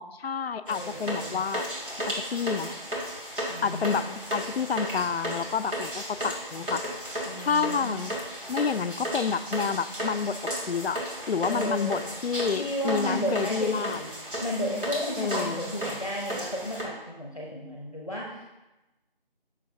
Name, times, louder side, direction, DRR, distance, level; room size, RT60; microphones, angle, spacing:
voice 1, 0.0-1.6 2.1-2.8 3.6-6.8 7.4-8.2 8.5-10.4 10.7-14.0 15.2-15.7, left 6 dB, 90° left, 13 dB, 0.5 m, -29 dB
voice 2, 0.7-1.4 3.5-4.1 7.2-8.0 11.4-12.1 12.5-18.4, equal, 35° left, -3 dB, 0.8 m, -33 dB
sound 1, 0.7-16.8, equal, 60° right, 2.3 m, -34 dB
7.6 x 6.5 x 2.8 m, 1.0 s
figure-of-eight pair, 175°, 30 cm